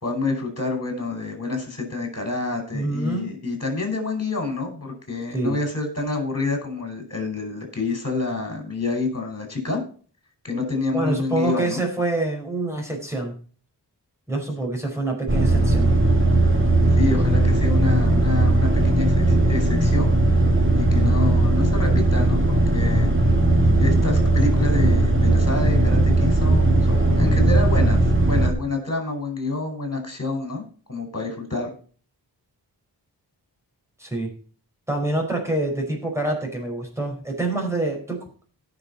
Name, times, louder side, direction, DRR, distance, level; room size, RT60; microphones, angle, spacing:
voice 1, 0.0-9.8 10.4-11.9 16.9-20.1 20.8-23.1 23.8-30.6 30.9-31.7, left 3 dB, 35° left, 3 dB, 5.2 m, -28 dB
voice 2, 2.7-3.3 5.3-5.6 10.9-13.3 14.3-15.9 34.0-34.3 34.9-38.2, right 2 dB, 5° right, 1 dB, 4.9 m, -26 dB
sound 1, 15.3-28.5, right 2 dB, 30° right, 2.2 m, -18 dB
17.5 x 6.2 x 4.2 m, 0.41 s
wide cardioid pair, 80°, 41 cm